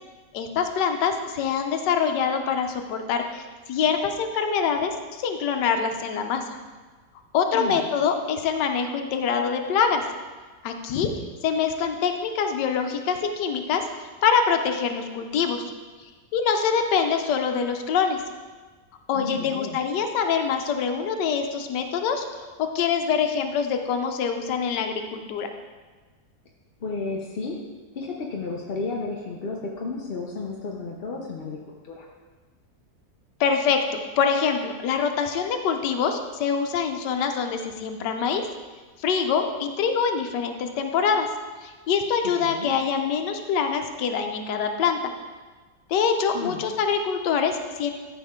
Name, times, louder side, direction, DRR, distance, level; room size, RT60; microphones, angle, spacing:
voice 1, 0.3-6.4 7.3-10.0 10.6-11.1 11.4-13.8 14.2-15.6 16.3-18.2 19.1-22.2 22.6-25.5 33.4-38.5 39.0-41.3 41.6-45.1 45.9-47.9, left 6 dB, 80° left, 5 dB, 1.4 m, -25 dB
voice 2, 19.1-19.8 26.8-27.6 27.9-31.6 31.8-32.1 42.4-42.7 46.3-46.6, left 3 dB, 50° left, -1 dB, 0.7 m, -32 dB
13.5 x 4.9 x 3.6 m, 1.3 s
omnidirectional pair, 1.8 m